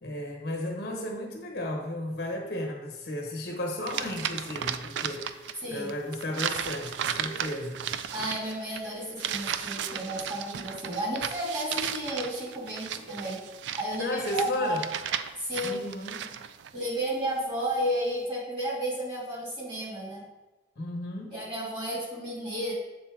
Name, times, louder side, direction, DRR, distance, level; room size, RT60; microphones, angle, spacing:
voice 1, 0.0-7.9 14.0-14.8 15.6-16.3 20.8-21.4, left 1 dB, 60° left, 1 dB, 1.0 m, -34 dB
sound 1, 3.9-5.6 5.9-16.7, right 9 dB, 75° right, 0.3 m, -35 dB
voice 2, 8.1-13.4 13.7-14.8 15.4-15.8 16.7-20.2 21.3-22.7, right 1 dB, 30° right, -6 dB, 2.2 m, -32 dB
7.1 x 4.2 x 3.6 m, 1.1 s
head